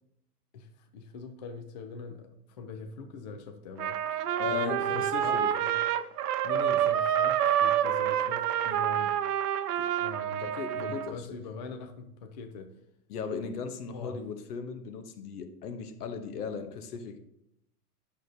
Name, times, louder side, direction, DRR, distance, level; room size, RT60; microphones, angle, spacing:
voice 1, 0.5-4.0 4.5-5.8 6.4-9.1 10.0-12.7 13.9-14.2, left 4 dB, 30° left, 0.4 m, -42 dB
Trumpet, 3.8-11.1, right 10 dB, 75° right, 0.7 m, -28 dB
voice 2, 4.4-5.5 9.8-9.9 10.4-11.4 13.1-17.2, left 6 dB, 70° left, 1.1 m, -37 dB
8.4 x 6.4 x 2.7 m
supercardioid pair, 155°, 47 cm